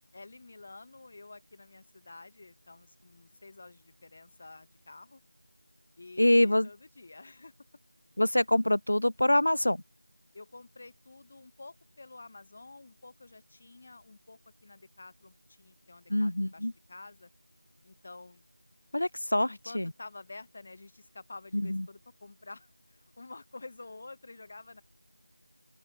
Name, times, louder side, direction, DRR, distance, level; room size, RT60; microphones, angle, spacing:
voice 1, 0.1-5.2 6.0-7.5 10.3-17.3 17.8-18.4 19.5-24.8, left 3 dB, 30° left, 2.3 m, -49 dB
voice 2, 6.2-6.7 8.2-9.8 16.1-16.7 18.9-19.9 21.5-21.8, left 1 dB, 65° left, 1.1 m, -25 dB
open air
figure-of-eight pair, 170°, 0 cm